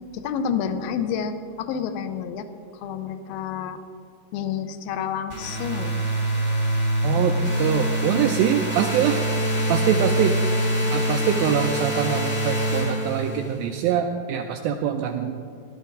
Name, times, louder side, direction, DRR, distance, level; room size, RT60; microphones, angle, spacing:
voice 1, 0.1-2.5 2.7-3.8 4.3-6.0, left 7 dB, 75° left, 9 dB, 2.2 m, -29 dB
sound 1, 5.3-13.6, right 1 dB, 50° left, 0.5 m, -24 dB
voice 2, 7.0-9.2 9.7-10.4 10.7-15.4, right 8 dB, 90° right, 5 dB, 2.1 m, -24 dB
15.5 x 12.0 x 4.0 m, 2.3 s
omnidirectional pair, 4.8 m